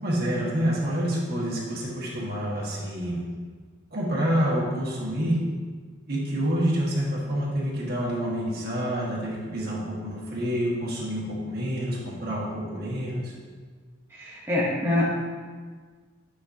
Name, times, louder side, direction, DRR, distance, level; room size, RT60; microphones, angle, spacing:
voice 1, 0.0-3.2 3.9-5.4 6.1-13.3, equal, 55° right, -5 dB, 1.7 m, -27 dB
voice 2, 14.1-15.1, left 1 dB, 10° right, -6 dB, 0.9 m, -25 dB
8.7 x 5.7 x 2.8 m, 1.5 s
head